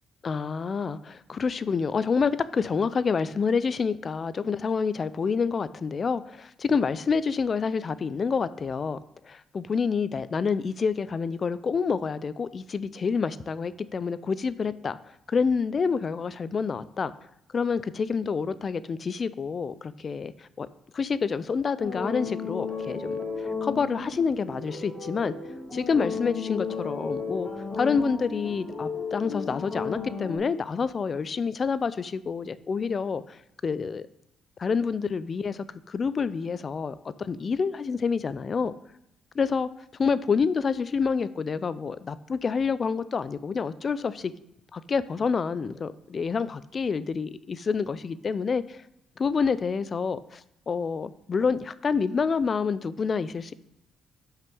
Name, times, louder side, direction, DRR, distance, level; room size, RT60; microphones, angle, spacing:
voice 1, 0.2-9.0 9.2-15.0 15.3-17.1 17.5-20.7 20.9-23.2 23.6-25.3 25.7-27.5 27.7-34.1 34.6-38.7 39.3-39.7 40.0-44.3 44.7-48.8 49.2-53.5, left 5 dB, 40° left, 16 dB, 0.4 m, -28 dB
sound 1, 21.8-30.4, left 5 dB, 25° left, 3.0 m, -34 dB
5.6 x 5.3 x 6.0 m, 0.81 s
cardioid pair, 90°, 0 cm